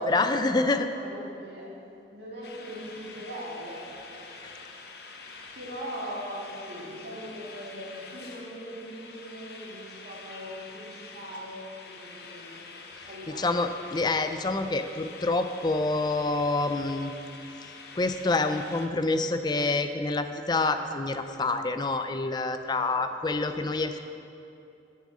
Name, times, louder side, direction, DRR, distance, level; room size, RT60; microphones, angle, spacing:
voice 1, 0.0-0.9 13.4-17.1 17.9-24.0, left 3 dB, 25° left, 8 dB, 0.4 m, -27 dB
voice 2, 0.9-1.8 2.1-4.2 5.5-12.7 13.0-13.6 22.8-23.0, equal, 65° right, -5 dB, 2.4 m, -40 dB
sound 1, 2.4-18.9, left 4 dB, 60° left, 0.8 m, -46 dB
7.4 x 7.2 x 7.4 m, 2.7 s
head